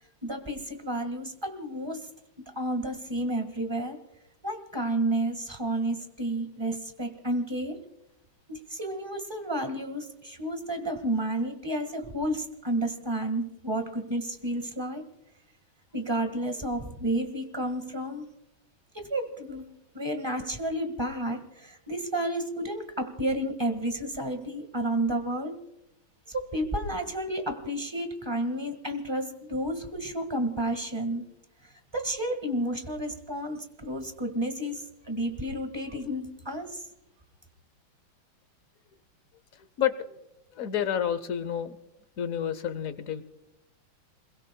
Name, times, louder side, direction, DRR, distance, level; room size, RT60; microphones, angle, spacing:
voice 1, 0.2-2.1 2.5-4.0 4.4-7.8 8.5-15.1 15.9-18.3 18.9-19.7 19.9-25.6 26.3-31.2 31.9-36.8, right 1 dB, 15° right, 6 dB, 1.5 m, -31 dB
voice 2, 39.5-40.2 40.5-41.8 42.2-43.2, left 9 dB, 60° left, 12 dB, 0.9 m, -30 dB
27.5 x 22.0 x 2.3 m, 0.85 s
omnidirectional pair, 2.3 m